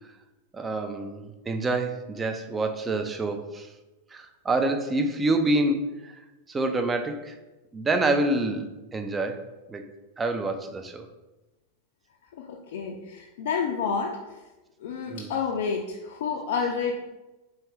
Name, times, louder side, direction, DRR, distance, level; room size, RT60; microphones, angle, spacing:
voice 1, 0.5-3.7 4.1-6.1 6.5-7.4 7.7-9.4 9.7-9.8 10.2-11.0 15.1-15.3, right 2 dB, 15° right, 6 dB, 0.4 m, -27 dB
voice 2, 12.3-14.2 14.8-16.9, left 6 dB, 55° left, 1 dB, 0.4 m, -29 dB
4.4 x 3.4 x 3.2 m, 1.1 s
figure-of-eight pair, 90°, 0 cm